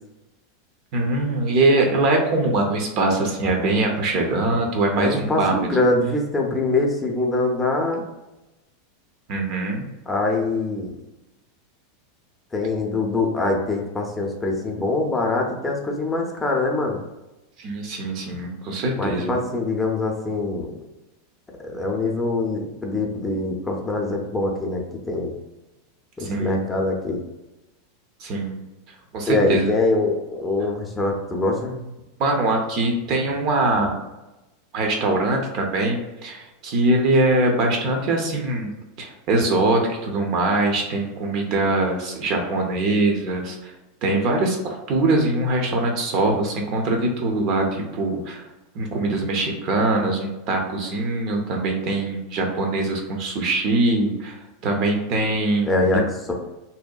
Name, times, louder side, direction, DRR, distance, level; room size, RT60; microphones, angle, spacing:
voice 1, 0.9-5.7 9.3-9.8 17.6-19.3 26.2-26.6 28.2-28.6 29.1-29.7 32.2-34.0 34.7-43.7 44.0-48.4 48.7-54.4 54.6-55.8, right 2 dB, 50° right, 2 dB, 0.5 m, -22 dB
voice 2, 4.9-8.0 10.1-10.9 12.5-17.0 19.0-20.7 21.6-25.3 26.2-27.2 29.3-31.8 55.7-56.3, left 2 dB, 15° left, 1 dB, 0.5 m, -23 dB
2.7 x 2.1 x 2.3 m, 1.0 s
figure-of-eight pair, 90°, 0 cm